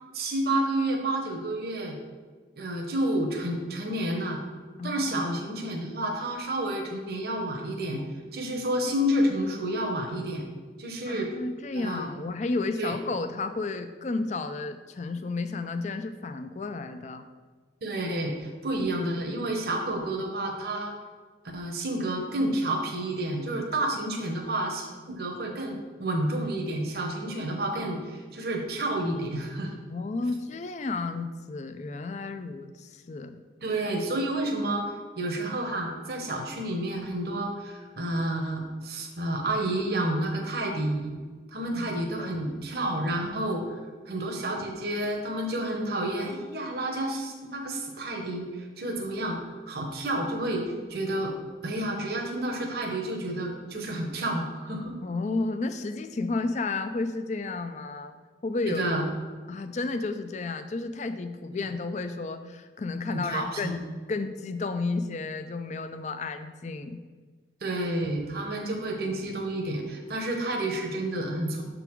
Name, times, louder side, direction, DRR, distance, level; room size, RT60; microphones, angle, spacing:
voice 1, 0.1-2.0 2.6-4.4 4.8-8.0 8.3-10.5 10.8-11.3 11.7-12.1 12.8-12.9 17.8-20.9 21.5-29.7 33.6-41.2 41.5-43.8 44.1-51.3 51.6-55.0 58.6-59.0 63.1-63.8 67.6-71.6, right 1 dB, 60° right, 1 dB, 0.9 m, -30 dB
voice 2, 4.8-5.4 11.1-17.3 29.9-33.4 41.7-41.9 42.2-42.3 55.0-58.2 58.4-58.8 59.5-67.0, left 3 dB, 40° left, 9 dB, 0.4 m, -32 dB
6.9 x 3.9 x 4.5 m, 1.4 s
head